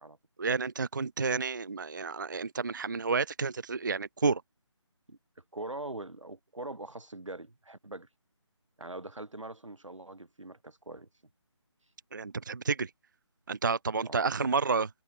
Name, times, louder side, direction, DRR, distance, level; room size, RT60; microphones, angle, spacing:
voice 1, 0.4-4.4 12.1-12.9 13.5-15.0, right 4 dB, 40° right, 0.4 m, -30 dB
voice 2, 5.5-8.1 8.8-11.1 14.0-14.5, right 2 dB, 85° right, 1.2 m, -42 dB
figure-of-eight pair, 155°, 16 cm